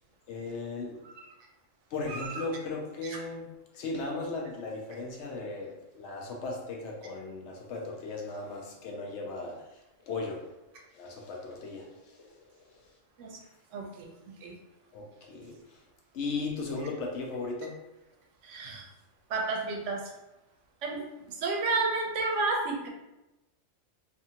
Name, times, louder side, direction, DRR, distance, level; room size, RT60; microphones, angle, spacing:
voice 1, 0.3-1.0 1.9-3.4 3.7-10.5 10.9-12.9 14.9-15.8 16.1-17.8, left 3 dB, 70° left, 0 dB, 0.8 m, -37 dB
voice 2, 2.1-2.4 3.0-3.2 13.2-13.4 13.7-14.6 18.4-18.9 19.3-20.1 20.8-22.9, right 3 dB, 75° right, 0 dB, 0.9 m, -32 dB
2.7 x 2.5 x 2.8 m, 0.97 s
omnidirectional pair, 1.3 m